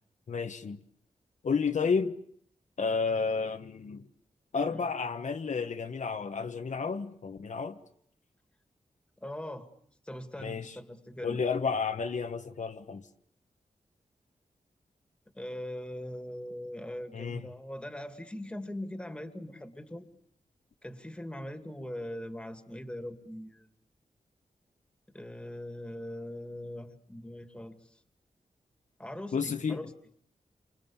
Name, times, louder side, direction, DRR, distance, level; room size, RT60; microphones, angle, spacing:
voice 1, 0.3-0.8 1.4-2.1 2.8-4.1 4.5-7.8 10.4-10.8 11.2-13.1 17.1-17.5 29.3-29.8, left 5 dB, 60° left, 1.3 m, -31 dB
voice 2, 9.2-9.7 10.0-11.4 15.3-20.1 20.8-23.7 25.1-28.0 29.0-29.9, left 1 dB, 5° left, 2.3 m, -41 dB
28.5 x 26.0 x 7.2 m
wide cardioid pair, 130°, 14 cm